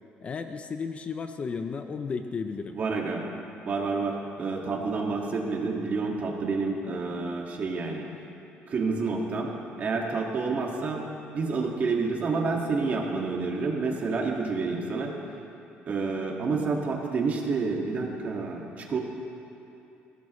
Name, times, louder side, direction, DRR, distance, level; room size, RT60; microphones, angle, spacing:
voice 1, 0.2-2.8, left 5 dB, 30° left, 7 dB, 0.6 m, -33 dB
voice 2, 2.7-3.2 3.7-8.1 8.7-9.5 9.8-11.1 11.3-15.1 15.9-19.0, right 4 dB, 40° right, 0 dB, 2.0 m, -29 dB
21.0 x 17.5 x 3.2 m, 2.8 s
cardioid pair, 145°, 4 cm